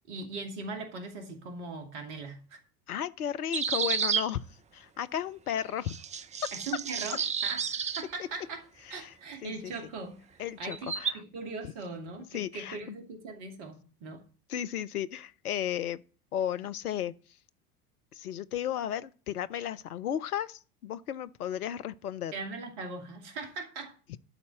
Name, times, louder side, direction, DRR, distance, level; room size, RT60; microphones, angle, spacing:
voice 1, 0.1-2.6 6.5-8.6 8.9-10.2 10.6-14.2 22.3-23.9, right 3 dB, 60° right, 2.5 m, -40 dB
voice 2, 2.9-4.4 4.7-6.0 8.2-8.3 8.9-9.1 9.4-9.7 10.4-11.2 12.3-13.0 14.5-16.0 16.3-17.1 18.1-22.3 24.1-24.2, left 10 dB, 80° left, 0.6 m, -34 dB
sound 1, 3.5-4.3 5.6-5.7 5.9-8.0 10.7-11.1, right 7 dB, 15° right, 0.5 m, -31 dB
12.0 x 4.2 x 7.6 m
figure-of-eight pair, 70°, 44 cm